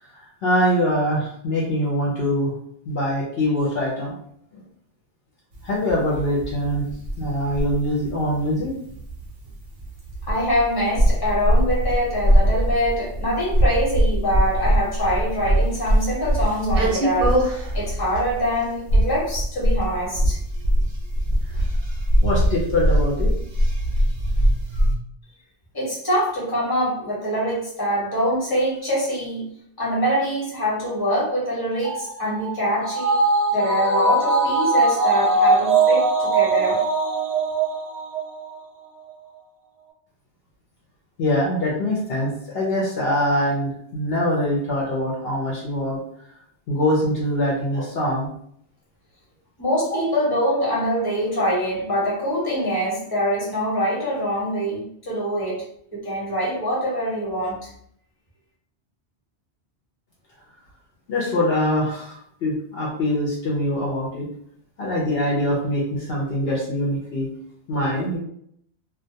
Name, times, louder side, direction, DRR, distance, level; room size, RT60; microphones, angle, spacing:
voice 1, 0.0-2.5 2.9-4.1 4.5-4.6 5.6-6.8 7.2-8.7 21.5-21.6 22.2-23.3 24.7-24.8 41.2-46.0 46.7-48.3 49.9-50.0 61.1-64.3 64.8-67.3 67.7-68.2, left 1 dB, 65° left, -4 dB, 0.8 m, -23 dB
sound 1, 5.5-25.0, equal, 55° right, 0.6 m, -22 dB
voice 2, 10.2-20.4 25.7-29.5 29.8-33.2 33.5-36.8 49.6-55.7 55.9-57.7, equal, 20° left, -6 dB, 0.9 m, -24 dB
sound 2, 31.8-38.5 38.8-38.9, right 3 dB, 85° right, 0.9 m, -21 dB
2.2 x 2.2 x 2.7 m, 0.69 s
omnidirectional pair, 1.2 m